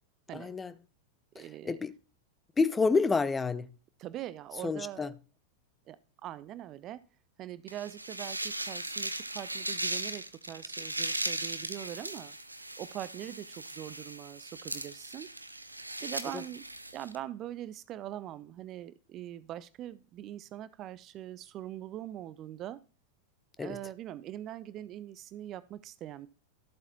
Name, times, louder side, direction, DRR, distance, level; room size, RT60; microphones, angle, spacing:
voice 1, 0.3-0.7 1.4-1.9 2.6-3.7 4.6-5.1 16.3-16.4 23.6-23.8, left 4 dB, 15° left, 0.7 m, -29 dB
voice 2, 1.3-1.8 4.0-5.1 5.9-6.0 6.2-7.0 7.4-12.4 12.8-15.3 16.0-16.7 16.9-22.8 23.6-26.3, right 12 dB, 35° right, 0.5 m, -42 dB
sound 1, 7.7-17.2, right 2 dB, 85° right, 0.7 m, -38 dB
13.5 x 7.9 x 3.0 m
figure-of-eight pair, 90°, 0 cm